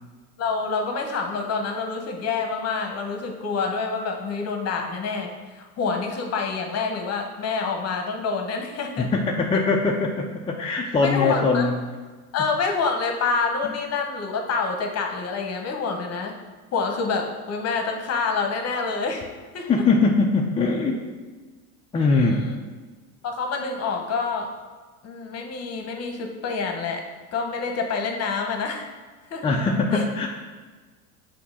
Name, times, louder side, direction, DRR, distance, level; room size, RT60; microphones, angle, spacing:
voice 1, 0.4-5.3 5.6-9.1 11.0-11.7 12.3-16.3 16.7-19.3 19.5-19.7 22.1-22.5 23.2-24.5 25.0-27.0 27.3-28.9 29.3-29.4 29.9-30.0, left 4 dB, 35° left, 3 dB, 1.0 m, -27 dB
voice 2, 9.0-11.7 13.6-13.7 19.6-21.0 21.9-22.4 29.4-30.3, left 3 dB, 15° left, -1 dB, 0.4 m, -22 dB
6.0 x 2.9 x 5.5 m, 1.4 s
hypercardioid pair, 95°, 44 cm